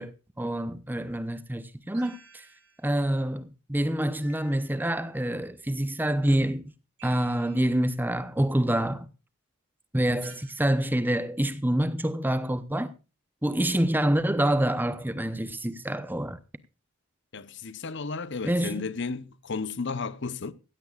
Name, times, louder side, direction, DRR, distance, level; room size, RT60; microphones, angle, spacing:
voice 1, 0.0-2.5 2.8-6.6 7.0-9.1 9.9-12.9 13.4-16.4 18.4-18.8, right 1 dB, 10° right, 0.7 m, -27 dB
sound 1, 1.9-2.9 4.2-5.1 7.0-7.9 10.2-10.8, right 4 dB, 55° right, 6.5 m, -53 dB
voice 2, 17.3-20.5, left 4 dB, 55° left, 0.8 m, -33 dB
16.0 x 16.0 x 2.4 m
head